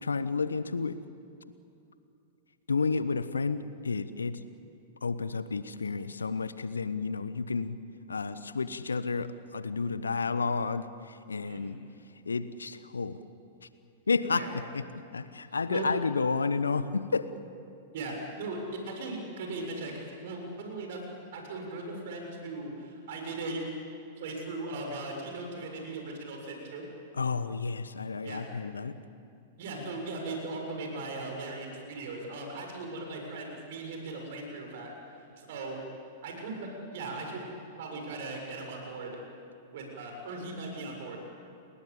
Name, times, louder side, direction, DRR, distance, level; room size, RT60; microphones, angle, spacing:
voice 1, 0.0-1.0 2.7-4.4 5.0-7.8 8.1-11.8 12.3-13.2 14.1-17.3 27.2-29.0, left 4 dB, 75° left, 14 dB, 1.0 m, -31 dB
voice 2, 11.4-11.8 14.4-14.5 15.7-15.9 17.9-21.0 21.3-23.6 24.2-26.8 28.2-28.4 29.6-34.9 35.4-35.8 36.2-37.4 37.7-39.2 39.7-41.2, right 2 dB, 55° right, 2 dB, 7.1 m, -38 dB
30.0 x 20.5 x 8.6 m, 2.6 s
figure-of-eight pair, 100°, 0 cm